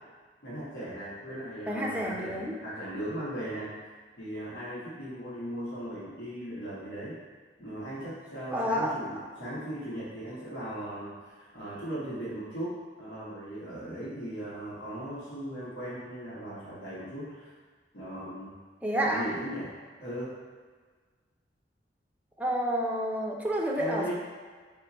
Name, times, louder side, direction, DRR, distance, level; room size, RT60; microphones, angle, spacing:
voice 1, 0.4-3.7 4.2-7.1 7.6-17.5 17.9-18.5 19.0-19.7 20.0-20.4 23.8-24.1, right 1 dB, 90° left, -10 dB, 1.4 m, -38 dB
voice 2, 1.6-2.5 8.5-9.0 18.8-19.3 22.4-24.1, equal, 10° right, -2 dB, 0.5 m, -29 dB
4.4 x 2.5 x 4.2 m, 1.5 s
head